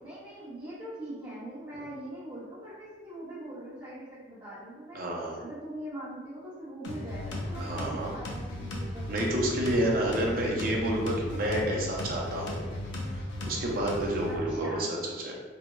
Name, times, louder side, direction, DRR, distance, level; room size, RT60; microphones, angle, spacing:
voice 1, 0.0-5.0 5.4-9.1 9.8-10.0 14.3-14.8, right 1 dB, 15° right, -14 dB, 1.0 m, -42 dB
voice 2, 4.9-5.4 7.6-8.2 9.1-12.7 13.0-15.3, right 1 dB, 50° right, -2 dB, 0.6 m, -29 dB
sound 1, 6.8-14.4, left 1 dB, 80° left, 0.6 m, -36 dB
3.5 x 2.1 x 3.0 m, 1.4 s
head